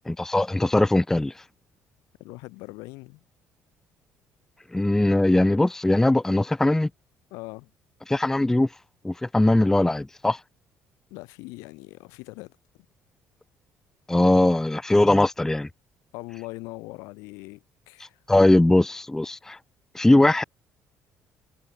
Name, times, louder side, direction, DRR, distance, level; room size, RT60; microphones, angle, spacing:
voice 1, 0.1-1.4 4.7-6.9 8.1-8.7 9.0-10.4 14.1-15.7 18.3-19.6 19.9-20.4, left 1 dB, 10° left, 0.5 m, -20 dB
voice 2, 2.2-3.2 7.3-7.7 11.1-12.6 16.1-18.2, left 25 dB, 85° left, 5.4 m, -41 dB
supercardioid pair, 75°, 5 cm